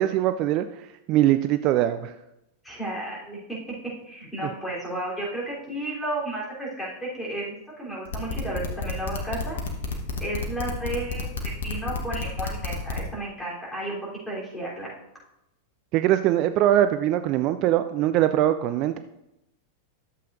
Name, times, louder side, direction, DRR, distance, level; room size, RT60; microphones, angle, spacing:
voice 1, 0.0-2.1 15.9-19.0, right 12 dB, 40° right, 10 dB, 0.3 m, -22 dB
voice 2, 2.6-3.6 4.0-9.6 10.2-11.3 11.6-14.0 14.3-14.9, right 1 dB, 5° left, -6 dB, 3.5 m, -33 dB
sound 1, 8.0-13.0, left 4 dB, 65° left, 1.2 m, -30 dB
12.0 x 7.5 x 2.6 m, 0.87 s
figure-of-eight pair, 90°, 0 cm